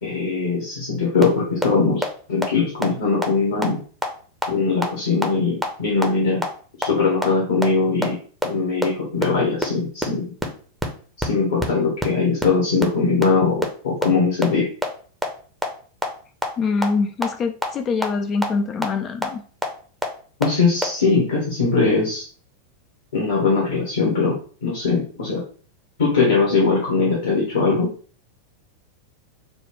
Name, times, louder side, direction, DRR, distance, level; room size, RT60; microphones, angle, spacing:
voice 1, 0.0-3.8 4.5-6.4 6.8-8.2 8.4-10.3 11.2-14.7 20.4-22.2 23.1-24.3 24.6-25.4 26.0-27.9, left 4 dB, 60° left, -3 dB, 1.2 m, -21 dB
sound 1, 1.2-1.3 1.6-1.7 2.0-2.1 2.4-2.5 2.8-2.9 3.2-3.3 3.6-3.7 4.0-4.1 4.4-4.5 4.8-4.9 5.2-5.3 5.6-5.7 6.0-6.1 6.4-6.5 6.8-6.9 7.2-7.3 7.6-7.7 8.0-8.1 8.4-8.5 8.8-8.9 9.2-9.3 9.6-9.7 10.0-10.1 10.4-10.5 10.8-10.9 11.2-11.3 11.6-11.7 12.0-12.1 12.4-12.5 12.8-12.9 13.2-13.3 13.6-13.7 14.0-14.1 14.4-14.5 14.8-14.9 15.2-15.3 15.6-15.7 16.0-16.1 16.4-16.5 16.8-16.9 17.2-17.3 17.6-17.7 18.0-18.1 18.4-18.5 18.8-18.9 19.2-19.3 19.6-19.7 20.0-20.1 20.4-20.5 20.8-20.9, equal, ahead, 0.7 m, -21 dB
voice 2, 16.6-19.4, left 4 dB, 30° left, 7 dB, 0.3 m, -24 dB
4.0 x 2.3 x 3.4 m, 0.42 s
figure-of-eight pair, 90°, 0 cm